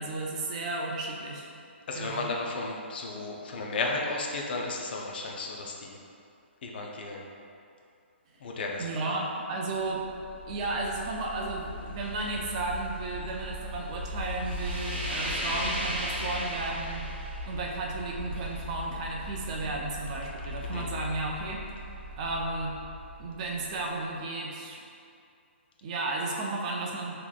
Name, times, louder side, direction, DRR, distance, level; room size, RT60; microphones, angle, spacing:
voice 1, 0.0-1.5 1.9-2.3 8.8-10.0 10.5-17.1 17.5-21.6 22.2-22.8 23.2-24.9 25.8-27.2, right 2 dB, 35° right, -1 dB, 0.4 m, -33 dB
voice 2, 1.9-6.0 6.6-7.2 8.4-9.1 20.7-20.9, left 3 dB, 50° left, 0 dB, 0.5 m, -34 dB
sound 1, 9.8-24.0, equal, 55° right, 0.9 m, -37 dB
3.9 x 2.9 x 2.4 m, 2.5 s
hypercardioid pair, 150°, 7 cm